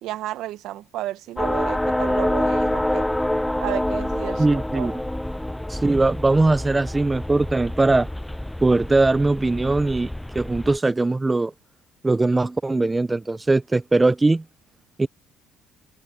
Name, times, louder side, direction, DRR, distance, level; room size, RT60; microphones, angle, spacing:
voice 1, 0.0-3.1 3.6-5.0, right 14 dB, 70° right, 1.4 m, -32 dB
sound 1, 1.4-10.8, left 1 dB, 5° left, 0.4 m, -27 dB
voice 2, 4.4-4.9 5.7-8.1 8.6-11.5 12.0-14.4 15.0-15.1, right 2 dB, 15° right, 1.0 m, -20 dB
supercardioid pair, 80°, 0 cm